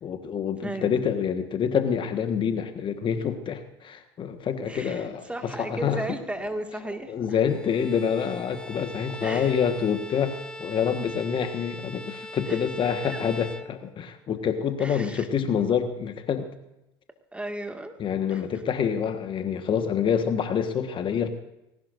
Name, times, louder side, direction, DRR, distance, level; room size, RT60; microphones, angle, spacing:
voice 1, 0.0-6.0 7.1-16.5 18.0-21.3, left 7 dB, 40° left, 7 dB, 1.5 m, -27 dB
voice 2, 0.6-1.1 4.6-7.4 9.2-9.5 12.5-12.6 13.0-13.2 14.8-15.3 17.3-18.0 18.3-18.4, right 1 dB, 10° right, 5 dB, 2.0 m, -35 dB
sound 1, 4.3-11.2, left 7 dB, 80° left, 2.7 m, -51 dB
Bowed string instrument, 7.5-14.3, left 2 dB, 5° left, 1.1 m, -41 dB
20.0 x 18.0 x 2.6 m, 0.89 s
hypercardioid pair, 75°, 13 cm